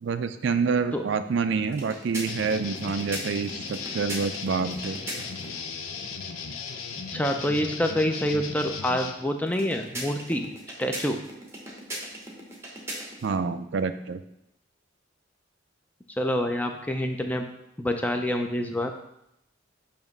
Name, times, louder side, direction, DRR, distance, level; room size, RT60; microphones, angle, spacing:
voice 1, 0.0-5.0 13.2-14.2, right 5 dB, 60° right, 10 dB, 0.3 m, -27 dB
sound 1, 1.7-5.6 9.5-13.4, right 1 dB, 15° right, 0.9 m, -39 dB
sound 2, 2.3-9.1, left 5 dB, 90° left, 0.6 m, -37 dB
voice 2, 7.1-10.5 10.8-11.2 16.2-17.4 17.8-18.9, equal, 10° left, 4 dB, 0.4 m, -27 dB
7.2 x 2.9 x 5.3 m, 0.81 s
head